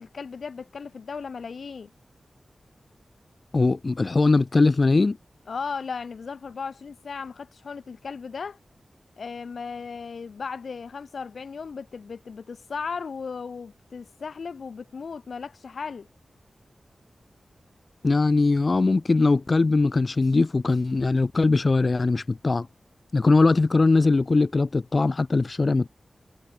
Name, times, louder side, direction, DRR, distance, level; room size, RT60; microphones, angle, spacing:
voice 1, 0.0-1.9 5.5-8.6 9.2-16.1, left 5 dB, 80° left, 0.8 m, -36 dB
voice 2, 3.5-5.2 18.0-22.7 23.1-25.9, left 3 dB, 45° left, 0.5 m, -21 dB
wide cardioid pair, 70°, 0 cm